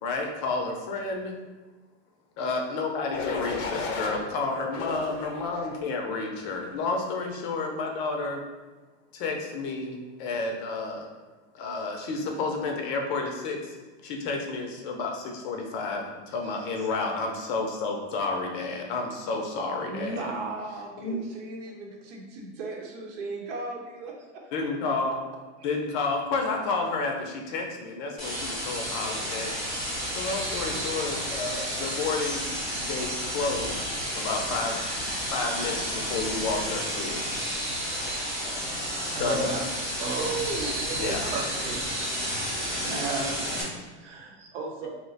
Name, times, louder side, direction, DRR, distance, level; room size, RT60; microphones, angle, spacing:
voice 1, 0.0-1.3 2.4-8.4 9.1-11.1 11.5-13.7 14.0-20.3 21.0-21.2 24.5-25.3 25.6-29.6 30.1-32.4 32.8-34.8 35.3-37.2 39.0-39.5 41.0-41.2, left 3 dB, 45° left, 1 dB, 0.5 m, -31 dB
sound 1, 3.1-4.2 4.7-5.8 6.3-6.7, left 4 dB, 90° left, 0.7 m, -34 dB
voice 2, 16.4-16.9 19.9-24.5 25.6-25.7 38.4-39.5 40.2-41.2 41.9-42.1 43.9-44.9, right 3 dB, 70° right, 0 dB, 0.9 m, -37 dB
sound 2, 28.2-43.6, equal, ahead, 0.9 m, -31 dB
voice 3, 39.1-39.6 40.0-40.4 41.0-41.8 42.8-44.5, right 3 dB, 20° right, 0 dB, 0.3 m, -34 dB
2.8 x 2.1 x 3.9 m, 1.3 s
supercardioid pair, 140°, 36 cm